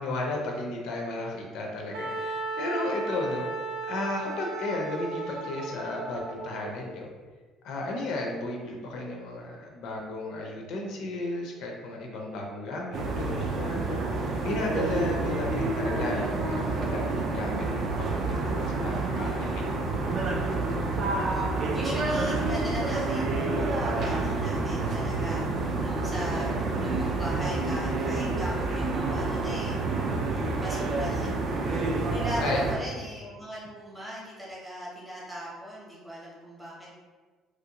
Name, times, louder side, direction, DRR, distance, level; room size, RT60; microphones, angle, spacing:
voice 1, 0.0-7.1 7.6-14.0 14.4-19.9 26.2-26.3 32.4-32.6, left 2 dB, 55° left, 0 dB, 0.4 m, -34 dB
Wind instrument woodwind instrument, 1.9-6.6, right 2 dB, 85° right, 0.7 m, -35 dB
sound 1, 12.9-32.7, right 3 dB, 35° right, 0.3 m, -28 dB
voice 2, 21.7-29.8 30.3-31.3 32.1-36.9, equal, 5° right, -7 dB, 0.7 m, -39 dB
3.0 x 2.5 x 2.8 m, 1.4 s
cardioid pair, 180°, 0 cm